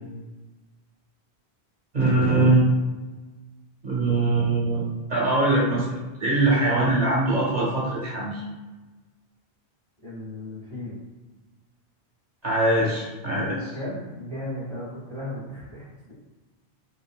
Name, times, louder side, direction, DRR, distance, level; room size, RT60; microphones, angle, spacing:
voice 1, 1.9-2.7 3.8-8.4 12.4-13.7, right 2 dB, 45° right, -6 dB, 0.8 m, -22 dB
voice 2, 10.0-11.0 13.4-16.1, left 1 dB, 5° left, -10 dB, 1.4 m, -36 dB
3.5 x 2.2 x 2.3 m, 1.2 s
omnidirectional pair, 1.1 m